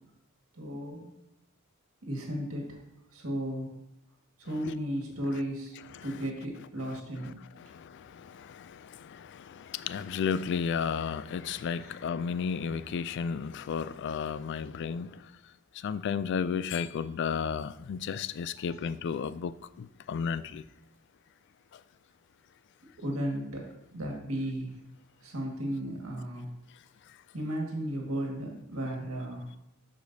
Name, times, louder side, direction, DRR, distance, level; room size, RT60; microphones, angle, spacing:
voice 1, 0.5-1.1 2.0-2.8 3.1-3.7 4.4-5.7 6.0-7.4 11.8-11.9 22.8-24.8 25.2-26.5 27.3-29.5, equal, 85° right, 0 dB, 1.8 m, -35 dB
voice 2, 7.6-15.2 15.8-20.6, left 6 dB, 55° left, 15 dB, 0.3 m, -33 dB
12.5 x 5.0 x 2.7 m, 0.84 s
head